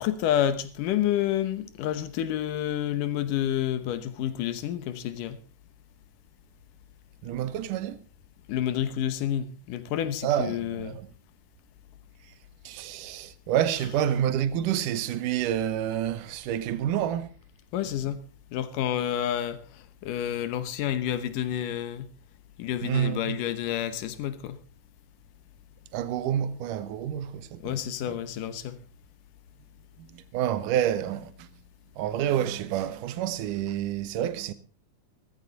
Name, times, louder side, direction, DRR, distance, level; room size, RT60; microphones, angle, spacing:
voice 1, 0.0-5.4 8.5-11.0 17.7-18.2 18.5-22.1 22.6-24.6 27.6-28.8, left 11 dB, 85° left, 2.7 m, -29 dB
voice 2, 7.2-8.0 10.2-11.0 12.6-17.3 22.8-23.4 25.9-27.8 28.1-28.2 30.0-31.5 32.0-34.5, right 10 dB, 85° right, 2.5 m, -28 dB
15.5 x 14.5 x 4.0 m
omnidirectional pair, 3.7 m